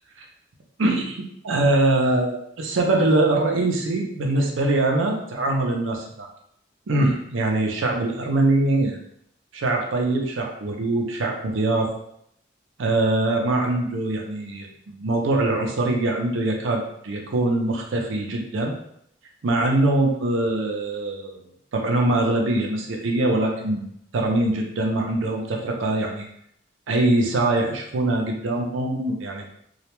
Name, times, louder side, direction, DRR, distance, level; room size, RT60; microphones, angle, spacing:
voice 1, 0.8-6.3 6.9-9.0 9.5-11.9 12.8-18.7 19.4-21.4 21.7-26.3 26.9-29.5, right 2 dB, 85° right, 1 dB, 0.5 m, -23 dB
2.3 x 2.1 x 2.9 m, 0.72 s
head